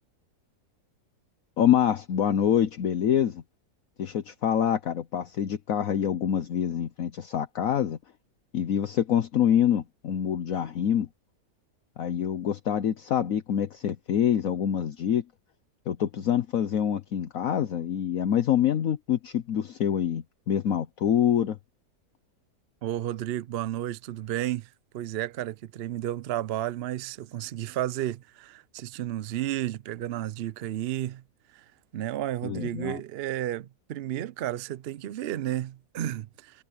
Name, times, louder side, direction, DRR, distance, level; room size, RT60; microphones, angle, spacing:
voice 1, 1.6-3.4 4.0-8.0 8.5-11.1 12.0-15.2 15.9-21.6 32.4-33.0, left 9 dB, 65° left, 1.2 m, -26 dB
voice 2, 22.8-31.2 31.5-36.6, right 13 dB, 70° right, 0.5 m, -32 dB
omnidirectional pair, 1.7 m